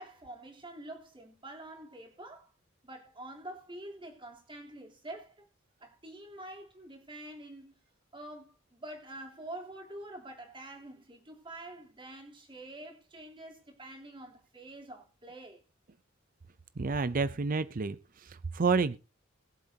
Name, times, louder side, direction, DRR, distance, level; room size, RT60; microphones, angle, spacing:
voice 1, 0.0-2.5 2.8-5.5 5.8-7.7 8.1-15.6, right 1 dB, 25° right, 3.4 m, -46 dB
voice 2, 16.8-18.0 18.5-19.0, right 4 dB, 45° right, 0.6 m, -28 dB
21.5 x 7.7 x 2.8 m
head